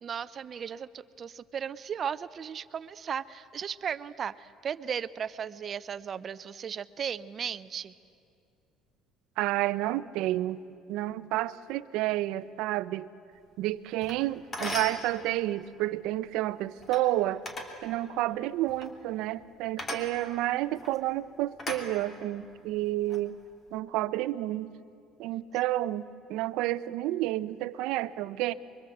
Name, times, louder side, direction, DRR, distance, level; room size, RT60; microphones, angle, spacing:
voice 1, 0.0-7.9, right 7 dB, 40° right, 15 dB, 0.6 m, -36 dB
voice 2, 9.4-10.6 10.9-13.1 13.6-17.4 17.8-23.4 23.7-24.7 25.2-28.5, right 15 dB, 80° right, 15 dB, 0.6 m, -30 dB
sound 1, 14.0-14.2 14.5-15.0 16.8-17.0 17.4-17.7 18.7-18.9 19.8-20.1 20.7-21.0 21.6-22.4 22.9-23.2, left 1 dB, 30° left, 3.0 m, -37 dB
25.0 x 23.5 x 7.8 m, 2.5 s
cardioid pair, 125°, 0 cm